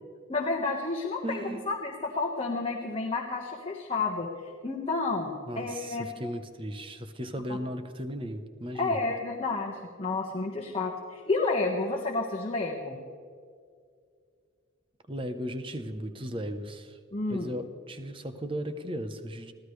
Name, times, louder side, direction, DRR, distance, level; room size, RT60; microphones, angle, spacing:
voice 1, 0.3-6.1 8.7-13.0 17.1-17.5, left 3 dB, 25° left, -1 dB, 1.5 m, -30 dB
voice 2, 1.2-1.6 5.5-9.0 15.1-17.0 17.3-19.5, equal, 25° right, 8 dB, 0.9 m, -36 dB
24.5 x 16.0 x 3.3 m, 2.2 s
head